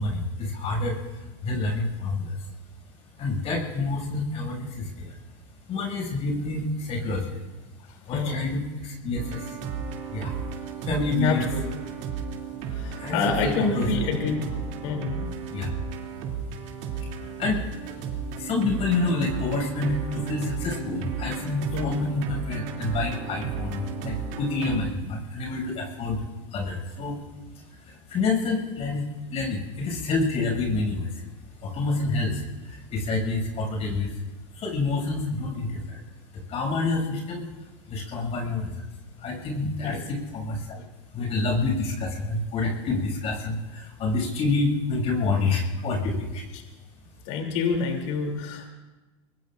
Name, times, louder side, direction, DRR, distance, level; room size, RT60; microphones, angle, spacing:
voice 1, 0.0-2.5 3.2-5.2 5.7-7.4 8.0-9.6 9.8-10.4 10.8-11.4 12.6-12.7 13.0-13.2 13.4-14.0 15.5-15.7 17.1-18.0 18.4-26.2 26.5-27.2 27.5-31.2 31.6-34.2 34.5-36.0 36.3-37.5 37.9-38.9 39.2-40.8 41.1-46.5, left 3 dB, 40° left, 1 dB, 6.9 m, -28 dB
sound 1, 9.1-24.8, right 6 dB, 60° right, 3.0 m, -34 dB
voice 2, 11.2-11.6 12.7-14.4 14.8-15.2 21.7-21.9 39.8-40.0 46.5-46.6 47.2-48.7, left 5 dB, 65° left, 2 dB, 3.3 m, -27 dB
24.5 x 22.0 x 2.6 m, 1.1 s
hypercardioid pair, 105°, 16 cm